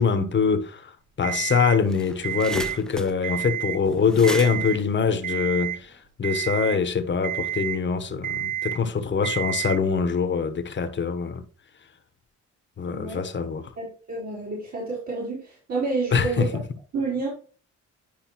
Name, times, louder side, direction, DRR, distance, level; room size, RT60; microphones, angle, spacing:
voice 1, 0.0-11.4 12.8-13.7 16.1-16.5, left 5 dB, 40° left, 1.1 m, -24 dB
Alarm, 1.2-1.8 2.2-2.8 3.2-3.8 4.2-4.8 5.2-5.8 6.2-6.8 7.2-7.8 8.2-8.8 9.2-9.8, right 11 dB, 85° right, 1.4 m, -30 dB
sound 1, 1.7-6.0, left 1 dB, ahead, 0.6 m, -38 dB
voice 2, 12.9-13.2 13.8-16.6 16.9-17.3, right 3 dB, 70° right, 3.8 m, -29 dB
10.5 x 4.9 x 3.0 m
cardioid pair, 90°, 30 cm